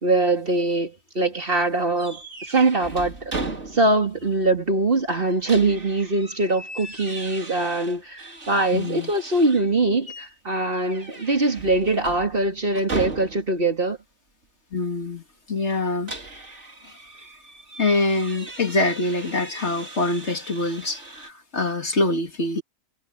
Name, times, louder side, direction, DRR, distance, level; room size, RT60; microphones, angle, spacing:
voice 1, 0.0-3.3 3.7-14.0, right 2 dB, 50° right, 2.8 m, -22 dB
sound 1, 2.0-4.1 4.4-4.5 5.1-9.7 10.0-10.3 10.7-13.7 15.7-21.3, right 2 dB, 80° right, 3.8 m, -37 dB
voice 2, 8.7-9.1 14.7-16.1 17.8-22.6, left 2 dB, 70° left, 2.8 m, -25 dB
omnidirectional pair, 1.2 m